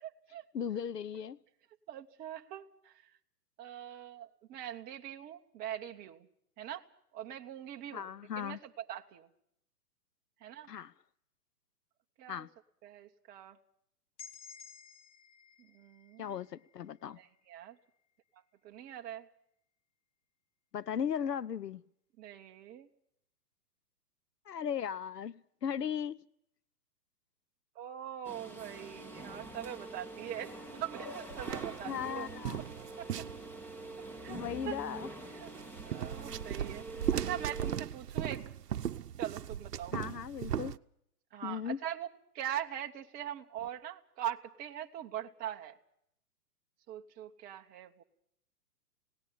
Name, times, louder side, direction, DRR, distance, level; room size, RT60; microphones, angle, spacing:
voice 1, 0.0-0.5 1.9-3.0 3.6-6.3 6.6-6.8 7.1-8.1 8.4-9.3 10.4-10.7 12.2-12.5 12.8-13.6 15.6-16.3 17.2-17.8 18.6-19.3 22.2-22.9 27.8-32.4 33.0-33.1 34.0-34.4 34.7-34.8 35.3-35.5 35.8-38.4 39.2-39.9 41.3-42.1 42.3-45.8 46.9-48.0, right 11 dB, 20° right, 0.9 m, -42 dB
voice 2, 0.5-1.4 7.9-8.6 10.7-10.9 12.3-12.5 16.2-17.2 20.7-21.8 24.5-26.2 31.8-32.6 34.3-35.1 39.9-40.8 41.4-41.8, left 8 dB, 90° left, 0.8 m, -37 dB
sound 1, 14.2-18.0, left 6 dB, 45° left, 2.5 m, -55 dB
sound 2, 28.2-37.8, right 2 dB, 5° left, 1.8 m, -45 dB
sound 3, 31.3-33.8 35.5-40.8, right 9 dB, 80° right, 0.8 m, -37 dB
27.0 x 18.0 x 5.6 m
hypercardioid pair, 130°, 47 cm